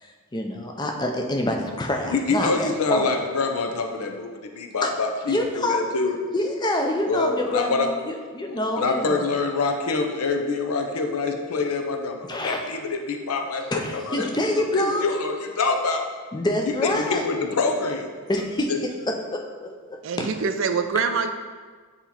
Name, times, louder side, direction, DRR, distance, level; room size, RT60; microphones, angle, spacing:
voice 1, 0.0-3.1 4.8-4.9 5.3-5.8 6.3-9.3 12.3-12.6 13.7-15.0 16.3-17.2 18.3-18.7 19.1-20.3, left 1 dB, 20° left, 2 dB, 0.5 m, -26 dB
voice 2, 2.1-6.2 7.1-7.9 8.5-13.6 13.9-14.3 14.6-16.0 16.7-18.1 18.7-18.8, left 4 dB, 85° left, 4 dB, 0.6 m, -26 dB
voice 3, 20.0-21.3, right 5 dB, 60° right, 8 dB, 0.4 m, -24 dB
7.9 x 3.0 x 4.2 m, 1.5 s
head